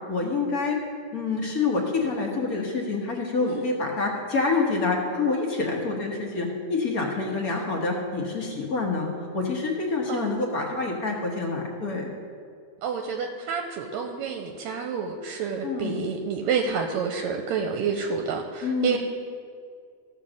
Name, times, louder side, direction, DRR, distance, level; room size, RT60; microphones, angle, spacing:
voice 1, 0.1-0.8 1.1-12.1 15.6-16.0 18.6-19.0, left 3 dB, 50° left, 0 dB, 1.1 m, -27 dB
voice 2, 10.1-10.5 12.8-19.0, right 6 dB, 80° right, 4 dB, 1.8 m, -29 dB
15.0 x 5.7 x 6.3 m, 2.3 s
omnidirectional pair, 3.4 m